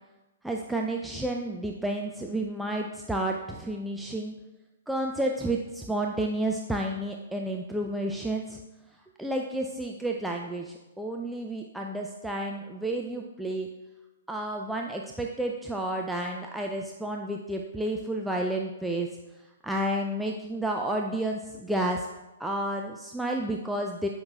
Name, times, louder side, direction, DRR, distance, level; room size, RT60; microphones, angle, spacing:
voice 1, 0.4-4.3 4.9-8.6 9.2-13.7 14.3-19.1 19.3-22.1 22.4-24.1, right 1 dB, 5° right, 0 dB, 0.4 m, -31 dB
12.5 x 5.5 x 2.4 m, 1.1 s
figure-of-eight pair, 120°, 0 cm